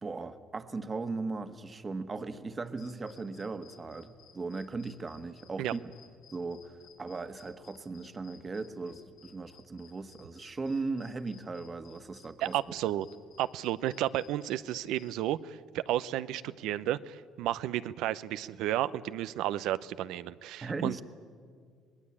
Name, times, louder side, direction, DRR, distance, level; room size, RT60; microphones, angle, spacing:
voice 1, 0.0-5.8 6.3-12.6 20.6-21.0, right 3 dB, 30° right, 9 dB, 1.5 m, -38 dB
sound 1, 2.6-15.1, left 7 dB, 80° left, 5.7 m, -60 dB
voice 2, 12.4-13.1 13.4-21.0, right 13 dB, 75° right, 15 dB, 0.7 m, -32 dB
25.5 x 20.0 x 8.8 m, 2.1 s
supercardioid pair, 70°, 0 cm